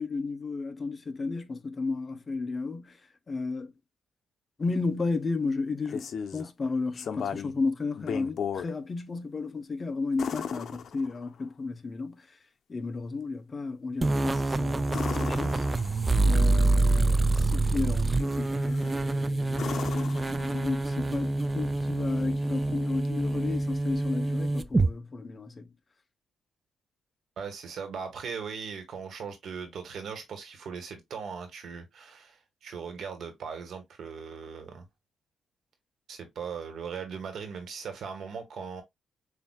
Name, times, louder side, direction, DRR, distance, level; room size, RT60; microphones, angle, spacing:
voice 1, 0.0-3.0 3.3-3.7 4.6-6.1 6.3-12.3 12.7-15.7 16.2-25.7, left 3 dB, 30° left, 0.8 m, -33 dB
sound 1, 5.6-6.5 7.0-7.6 8.0-8.7 10.2-11.4 14.9-16.2 18.7-19.0 19.5-20.9 23.1-23.2, left 7 dB, 60° left, 0.7 m, -36 dB
sound 2, 14.0-24.9, right 2 dB, 20° right, 0.4 m, -26 dB
voice 2, 27.4-34.9 36.1-38.8, right 6 dB, 70° right, 1.6 m, -39 dB
6.9 x 2.7 x 2.3 m
cardioid pair, 100°, 0 cm